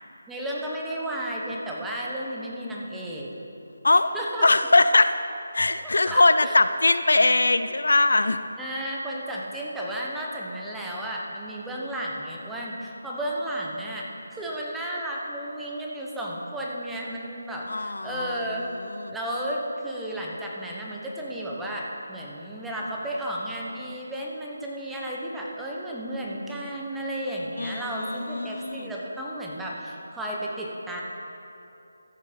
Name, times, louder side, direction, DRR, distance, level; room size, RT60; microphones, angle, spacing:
voice 1, 0.3-3.3 3.9-4.5 6.1-6.5 8.6-18.7 19.1-31.0, right 1 dB, 5° right, -4 dB, 1.0 m, -33 dB
voice 2, 4.4-5.1 5.5-8.4 17.7-18.4 19.0-19.1 27.6-28.8, left 2 dB, 80° left, 11 dB, 0.5 m, -21 dB
14.5 x 6.6 x 5.2 m, 2.8 s
figure-of-eight pair, 165°, 0 cm